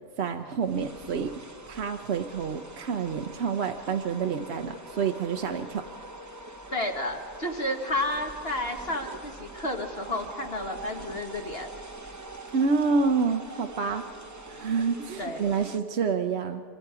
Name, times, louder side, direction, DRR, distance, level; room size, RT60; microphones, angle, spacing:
voice 1, 0.2-5.8 12.5-14.1 14.5-16.6, right 5 dB, 55° right, 5 dB, 0.9 m, -28 dB
sound 1, 0.6-15.8, right 2 dB, 15° right, 0.7 m, -44 dB
voice 2, 6.7-11.7 15.2-15.4, left 1 dB, 45° left, 2 dB, 1.6 m, -31 dB
26.5 x 24.0 x 4.8 m, 2.3 s
omnidirectional pair, 1.5 m